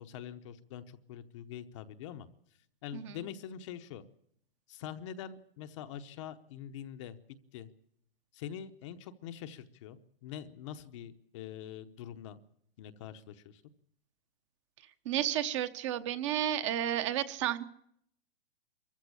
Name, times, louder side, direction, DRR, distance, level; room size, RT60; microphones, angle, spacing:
voice 1, 0.0-2.3 2.8-4.0 4.7-7.2 7.5-7.7 8.3-12.4 12.8-13.6, left 9 dB, 30° left, 9 dB, 0.9 m, -44 dB
voice 2, 15.0-17.6, right 11 dB, 30° right, 11 dB, 1.0 m, -32 dB
23.5 x 15.0 x 8.5 m, 0.70 s
hypercardioid pair, 165°, 29 cm